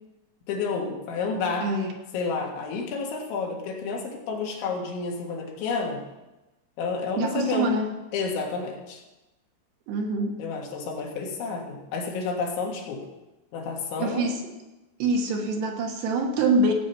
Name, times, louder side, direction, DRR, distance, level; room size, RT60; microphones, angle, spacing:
voice 1, 0.5-1.7 2.1-6.0 6.8-7.7 8.1-9.0 10.4-13.1 13.5-14.3, left 4 dB, 75° left, 0 dB, 4.0 m, -30 dB
voice 2, 1.6-1.9 7.2-7.9 9.9-10.4 14.0-14.4 15.0-16.7, right 2 dB, 70° right, 2 dB, 3.1 m, -25 dB
16.5 x 8.6 x 5.5 m, 1.0 s
omnidirectional pair, 5.4 m